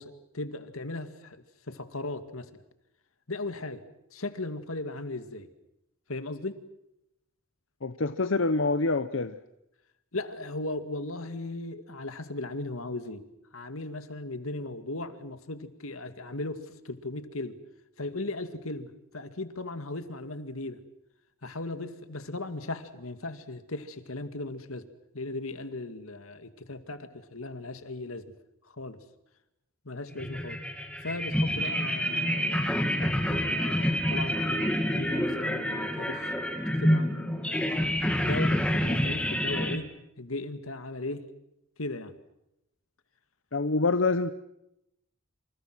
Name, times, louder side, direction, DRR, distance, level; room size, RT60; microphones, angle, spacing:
voice 1, 0.0-2.6 3.3-3.8 4.1-5.5 6.1-6.6 10.1-13.2 13.5-17.6 18.0-20.8 21.4-24.9 25.1-28.2 28.8-29.0 29.8-30.6 31.0-37.7 38.2-39.9 40.2-41.2 41.8-42.1, left 2 dB, 85° left, 10 dB, 2.3 m, -37 dB
voice 2, 7.8-9.4 43.5-44.3, left 3 dB, 65° left, 11 dB, 0.9 m, -26 dB
sound 1, 30.1-39.8, equal, 5° left, 2.5 m, -28 dB
28.0 x 28.0 x 6.2 m, 0.84 s
head